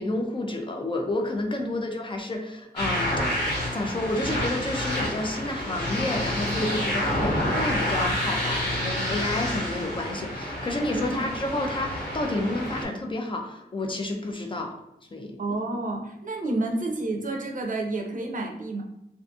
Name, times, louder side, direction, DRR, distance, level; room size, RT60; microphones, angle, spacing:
voice 1, 0.0-3.3 3.7-14.8 15.1-15.4, left 1 dB, 30° left, 2 dB, 0.3 m, -30 dB
sound 1, 2.8-12.8, left 1 dB, 75° left, 1.2 m, -28 dB
voice 2, 15.4-18.8, right 2 dB, 50° right, 1 dB, 0.5 m, -30 dB
2.6 x 2.5 x 2.3 m, 0.87 s
wide cardioid pair, 115°, 17 cm